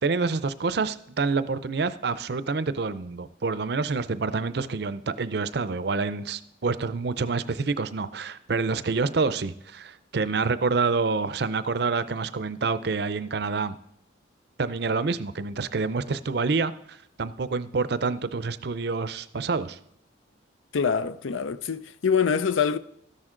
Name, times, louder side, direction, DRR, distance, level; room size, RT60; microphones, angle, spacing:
voice 1, 0.0-13.8 14.6-19.8, right 4 dB, 55° right, 0.5 m, -27 dB
voice 2, 20.7-22.8, left 6 dB, 80° left, 0.5 m, -25 dB
13.0 x 10.5 x 3.8 m
head